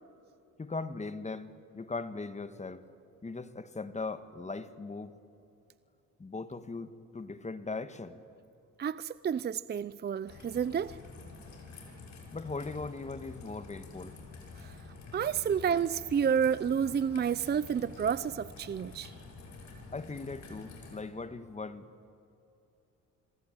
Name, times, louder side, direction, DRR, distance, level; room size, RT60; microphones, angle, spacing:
voice 1, 0.6-2.8 3.2-5.2 6.2-8.2 12.3-14.2 19.9-21.9, left 3 dB, 25° left, 1.7 m, -39 dB
voice 2, 8.8-11.0 14.6-14.7 15.1-19.1, right 7 dB, 35° right, 0.6 m, -30 dB
Raindrop / Trickle dribble, 10.3-21.0, left 4 dB, 65° left, 6.6 m, -49 dB
28.5 x 22.5 x 9.1 m
cardioid pair, 90°, 30 cm